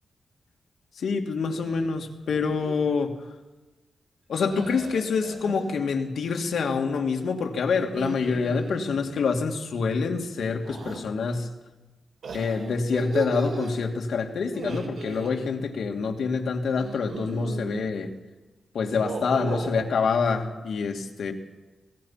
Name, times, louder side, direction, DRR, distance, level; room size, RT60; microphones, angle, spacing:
voice 1, 1.0-3.2 4.3-11.5 12.3-18.1 18.7-21.3, left 5 dB, 80° left, 3 dB, 2.3 m, -26 dB
sound 1, 1.5-1.9 2.3-2.8 4.5-5.7 7.8-9.2 10.6-11.0 12.2-13.8 14.5-15.3 16.8-17.9 18.9-19.9, right 4 dB, 80° right, 4.9 m, -36 dB
24.5 x 19.0 x 5.8 m, 1.1 s
wide cardioid pair, 145°, 0 cm